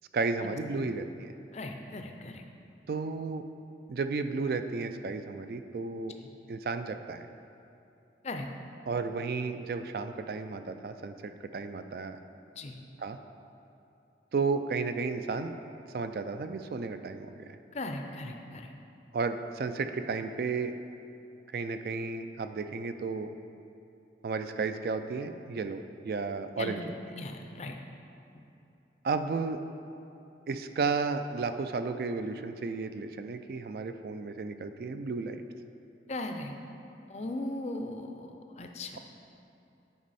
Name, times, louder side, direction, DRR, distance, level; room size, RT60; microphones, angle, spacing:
voice 1, 0.1-1.3 2.9-3.4 3.9-6.2 6.5-7.3 8.9-12.2 13.0-13.2 14.3-15.5 15.9-17.4 19.1-20.7 21.5-23.3 24.2-26.8 29.0-29.6 30.5-35.4, right 4 dB, 55° right, 9 dB, 0.3 m, -33 dB
voice 2, 1.5-2.4 8.2-8.5 12.6-12.8 17.7-18.7 26.6-27.8 36.1-36.5 37.1-39.0, left 2 dB, 40° left, 5 dB, 0.5 m, -38 dB
9.4 x 5.2 x 4.1 m, 2.8 s
head